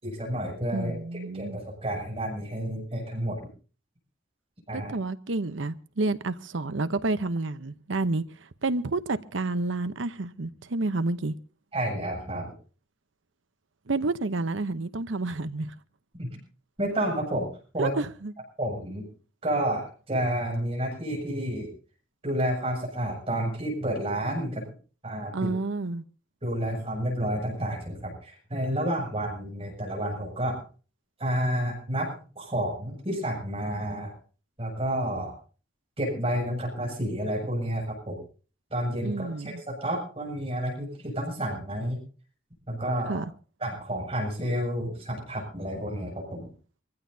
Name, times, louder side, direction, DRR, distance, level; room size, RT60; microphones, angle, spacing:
voice 1, 0.0-1.0 1.3-3.4 4.7-4.9 11.7-12.5 16.2-16.3 16.8-17.5 17.7-17.9 18.6-19.1 19.4-21.7 22.2-24.6 25.0-25.5 26.4-30.6 31.2-34.1 34.6-35.3 36.0-38.2 38.7-42.0 42.7-43.2 43.6-46.5, right 1 dB, 30° right, 6.8 m, -30 dB
voice 2, 0.7-1.6 4.7-8.2 8.6-11.3 13.9-15.7 17.8-18.3 25.3-26.0 39.0-39.5 43.1-43.2, right 3 dB, 80° right, 0.9 m, -29 dB
25.5 x 15.5 x 2.8 m
head